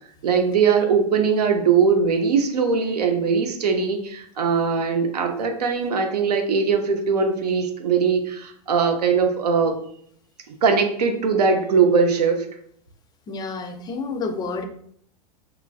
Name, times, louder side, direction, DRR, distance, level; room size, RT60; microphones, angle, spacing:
voice 1, 0.2-9.8 10.5-12.5, right 5 dB, 90° right, 5 dB, 0.5 m, -20 dB
voice 2, 13.3-14.6, left 4 dB, 20° left, 7 dB, 0.4 m, -29 dB
3.0 x 2.4 x 2.3 m, 0.64 s
hypercardioid pair, 100°, 20 cm